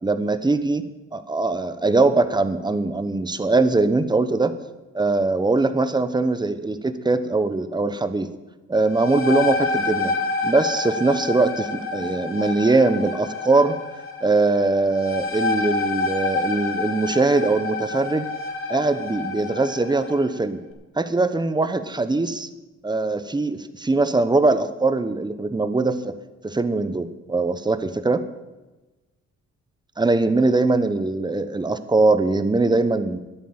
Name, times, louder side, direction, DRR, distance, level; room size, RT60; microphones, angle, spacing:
voice 1, 0.0-0.8 1.1-4.5 4.9-8.3 8.7-10.1 10.4-13.8 14.2-18.3 18.7-20.6 21.0-22.5 22.8-26.1 26.4-28.2 30.0-33.2, right 3 dB, 15° right, 11 dB, 1.0 m, -21 dB
sound 1, 8.7-20.2, left 3 dB, 45° left, 2.8 m, -28 dB
10.0 x 8.8 x 8.7 m, 1.1 s
cardioid pair, 90°, 30 cm